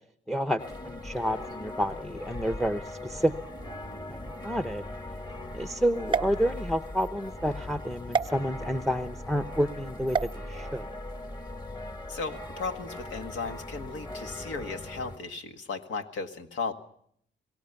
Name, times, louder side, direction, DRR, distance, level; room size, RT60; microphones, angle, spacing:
voice 1, 0.3-3.5 4.1-4.8 5.5-10.9, equal, ahead, 10 dB, 0.8 m, -30 dB
sound 1, 0.6-15.2, left 1 dB, 20° left, 1.9 m, -40 dB
sound 2, 6.1-7.1 8.1-8.3 10.1-10.3, right 6 dB, 25° right, 0.7 m, -30 dB
voice 2, 12.1-16.7, left 4 dB, 75° left, 6 dB, 1.9 m, -36 dB
23.0 x 18.0 x 7.0 m, 0.68 s
cardioid pair, 90°, 20 cm